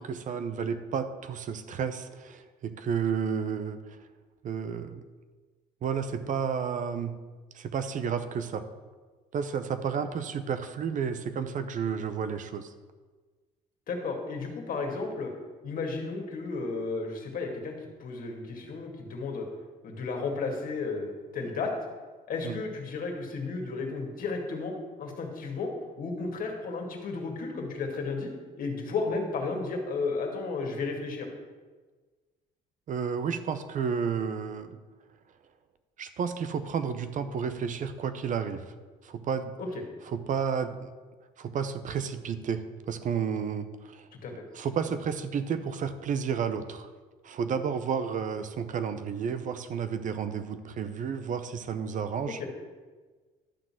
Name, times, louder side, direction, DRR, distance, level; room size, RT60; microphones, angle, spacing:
voice 1, 0.0-4.0 4.4-5.0 5.8-7.1 7.5-8.7 9.3-12.7 22.4-22.5 32.9-34.8 36.0-38.6 39.0-39.5 40.1-40.9 41.4-44.1 44.5-46.9 47.2-52.4, right 6 dB, 50° right, 10 dB, 0.7 m, -31 dB
voice 2, 13.9-15.3 15.6-17.7 18.0-19.4 19.8-21.7 22.3-24.7 25.0-25.7 26.0-28.3 28.6-31.3 39.6-39.8 44.1-44.3 52.3-52.5, left 4 dB, 55° left, 2 dB, 2.2 m, -33 dB
11.5 x 3.9 x 7.5 m, 1.4 s
cardioid pair, 110°, 17 cm